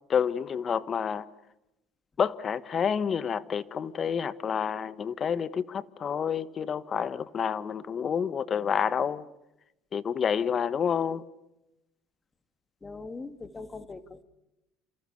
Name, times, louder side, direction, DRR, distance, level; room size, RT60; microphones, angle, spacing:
voice 1, 0.1-1.2 2.2-9.2 9.9-11.2, left 7 dB, 40° left, 1.4 m, -29 dB
voice 2, 12.8-14.2, left 3 dB, 25° left, 2.6 m, -41 dB
28.5 x 28.5 x 6.8 m
hypercardioid pair, 65°, 0 cm